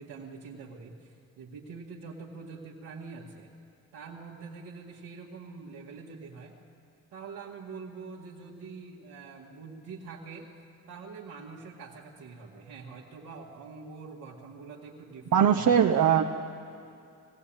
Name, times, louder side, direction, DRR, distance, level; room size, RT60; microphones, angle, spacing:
voice 1, 0.0-3.5 3.9-6.5 7.1-10.5 10.9-15.8, right 4 dB, 80° right, -5 dB, 2.0 m, -45 dB
voice 2, 15.3-16.2, right 8 dB, 55° right, 4 dB, 0.9 m, -21 dB
21.0 x 16.0 x 8.9 m, 2.5 s
supercardioid pair, 55°, 36 cm